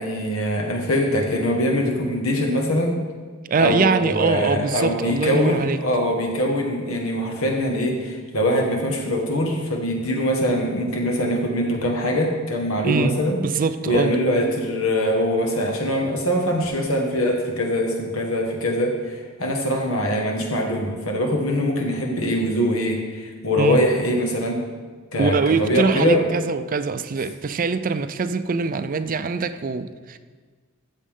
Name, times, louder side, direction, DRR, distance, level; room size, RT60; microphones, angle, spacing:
voice 1, 0.0-3.0 3.6-13.4 13.9-24.6 25.1-26.3, equal, 85° left, 1 dB, 1.8 m, -23 dB
voice 2, 3.5-5.8 12.8-14.1 23.5-23.8 25.2-30.2, right 4 dB, 40° right, 11 dB, 0.4 m, -23 dB
13.5 x 7.3 x 3.8 m, 1.5 s
head